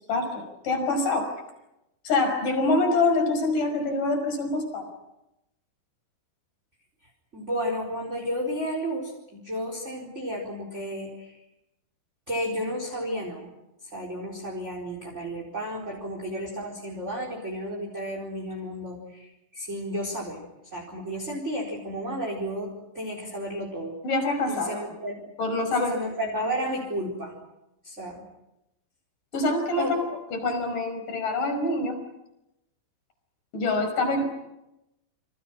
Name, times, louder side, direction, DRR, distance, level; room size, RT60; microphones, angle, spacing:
voice 1, 0.1-1.3 2.1-4.9 24.0-24.8 25.4-26.0 29.3-30.0 30.3-32.0 33.5-34.3, left 2 dB, 45° left, 6 dB, 6.8 m, -25 dB
voice 2, 7.3-11.4 12.3-13.5 13.9-20.4 20.7-24.0 24.5-25.2 25.8-27.3 27.8-28.2 29.8-29.9, equal, 15° right, 0 dB, 4.1 m, -32 dB
29.0 x 26.5 x 6.1 m, 0.91 s
omnidirectional pair, 5.4 m